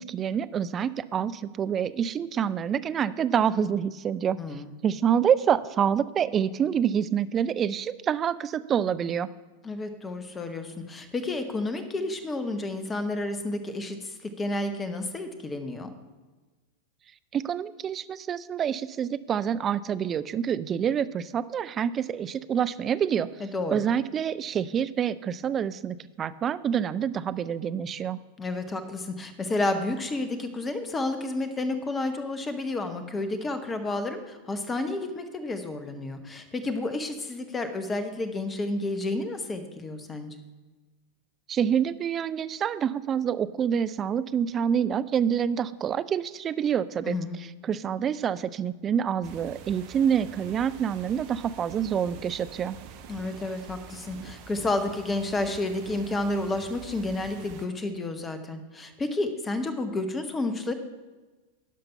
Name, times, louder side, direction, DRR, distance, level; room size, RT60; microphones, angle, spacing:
voice 1, 0.0-4.4 4.8-9.3 17.3-23.3 23.7-28.2 41.5-52.8, right 8 dB, 25° right, 14 dB, 0.3 m, -27 dB
voice 2, 4.4-4.8 9.6-15.9 23.4-23.8 28.4-40.4 47.0-47.5 53.1-60.7, left 2 dB, 15° left, 9 dB, 1.0 m, -31 dB
sound 1, 49.2-57.7, right 7 dB, 45° right, 0.8 m, -46 dB
11.5 x 5.3 x 5.5 m, 1.3 s
figure-of-eight pair, 90°, 0 cm